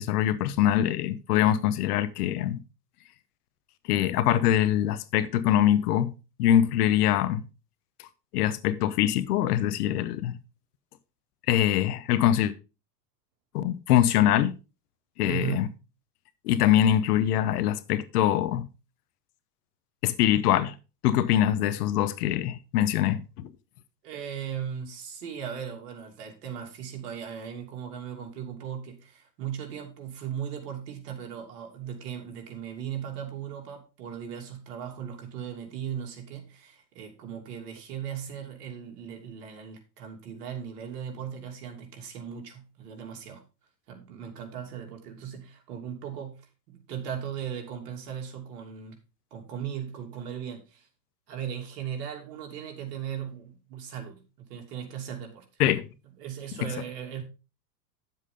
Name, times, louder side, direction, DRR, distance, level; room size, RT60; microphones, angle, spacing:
voice 1, 0.0-2.6 3.9-6.1 6.4-7.4 8.3-10.4 11.5-12.5 13.5-14.5 15.2-15.7 16.4-18.7 20.0-20.7 21.0-23.2 55.6-55.9, left 11 dB, 65° left, 1.2 m, -23 dB
voice 2, 15.2-15.8 24.0-43.4 43.9-46.4 46.7-49.0 49.3-50.9 51.3-55.4 56.2-57.2, right 8 dB, 70° right, 3.0 m, -37 dB
9.9 x 7.5 x 3.7 m
hypercardioid pair, 125°, 50 cm